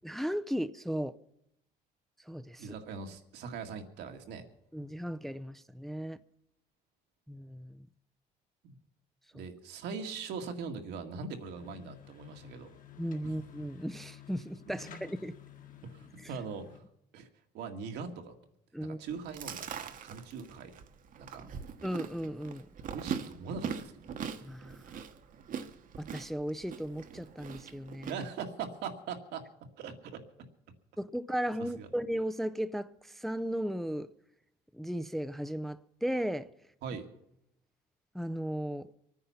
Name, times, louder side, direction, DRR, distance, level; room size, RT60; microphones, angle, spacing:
voice 1, 0.0-1.1 2.3-2.7 4.7-6.2 7.3-7.9 9.3-9.4 13.0-15.3 18.7-19.0 21.8-22.7 24.4-25.0 26.0-28.2 31.0-34.1 34.7-36.5 38.1-38.9, equal, ahead, 0.5 m, -36 dB
voice 2, 2.6-4.5 8.6-8.8 9.3-12.7 13.2-13.3 15.9-16.8 17.1-17.3 17.5-18.3 18.8-20.7 21.2-21.5 22.9-24.1 28.1-29.4 29.8-30.2 31.8-31.9 36.8-37.1, right 5 dB, 80° right, 2.0 m, -41 dB
sound 1, 11.4-16.8, left 8 dB, 55° left, 2.0 m, -52 dB
Chewing mastication, 19.1-28.1, right 7 dB, 55° right, 1.2 m, -41 dB
23.5 x 9.6 x 5.7 m
cardioid pair, 110°, 17 cm